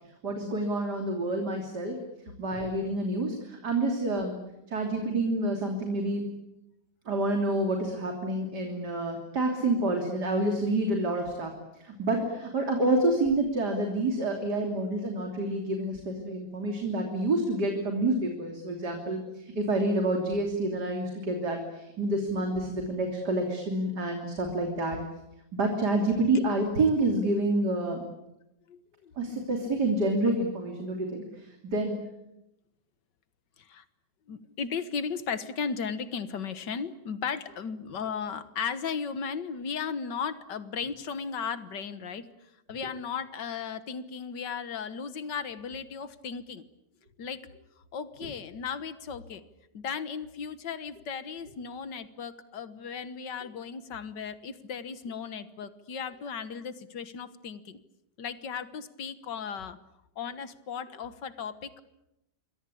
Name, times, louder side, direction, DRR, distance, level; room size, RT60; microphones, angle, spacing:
voice 1, 0.2-2.0 2.4-4.3 4.7-6.2 7.1-25.0 25.5-28.0 29.2-31.9, right 2 dB, 70° right, 3 dB, 3.7 m, -28 dB
voice 2, 28.7-29.4 33.6-33.8 34.3-42.3 42.7-46.6 47.2-47.4 47.9-49.4 49.7-57.8 58.2-59.8 60.2-61.8, left 6 dB, 90° left, 12 dB, 2.0 m, -36 dB
27.5 x 23.0 x 8.6 m, 0.88 s
omnidirectional pair, 1.8 m